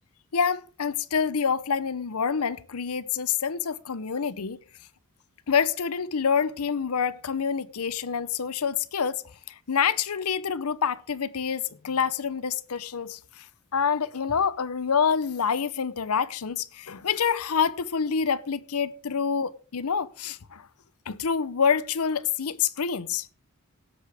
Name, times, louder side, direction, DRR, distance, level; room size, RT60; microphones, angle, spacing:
voice 1, 0.3-4.6 5.5-9.2 9.5-13.2 13.7-20.6 21.1-23.3, left 6 dB, 80° left, 0.7 m, -27 dB
17.5 x 8.1 x 3.5 m
head